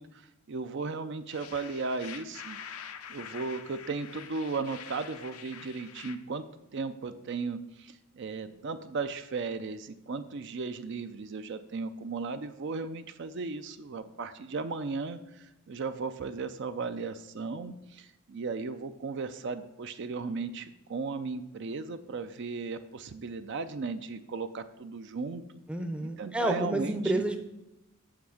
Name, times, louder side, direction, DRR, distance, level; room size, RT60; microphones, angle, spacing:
voice 1, 0.0-2.6 3.1-6.5 6.7-25.4 26.0-27.2, right 4 dB, 55° right, 10 dB, 0.4 m, -36 dB
sound 1, 1.3-6.2, left 8 dB, 85° left, 0.7 m, -46 dB
voice 2, 25.7-27.4, right 1 dB, 5° right, 6 dB, 0.6 m, -29 dB
7.0 x 5.9 x 6.4 m, 0.92 s
head